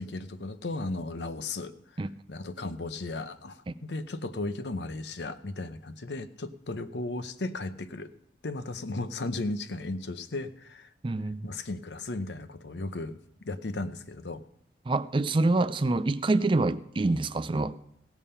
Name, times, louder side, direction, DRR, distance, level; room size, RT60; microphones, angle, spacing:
voice 1, 0.0-1.7 2.3-8.1 8.4-10.9 11.4-14.4, left 2 dB, 75° left, 11 dB, 0.8 m, -35 dB
voice 2, 11.0-11.5 14.9-17.8, right 2 dB, 30° right, 14 dB, 0.4 m, -26 dB
16.5 x 7.1 x 5.6 m, 0.77 s
head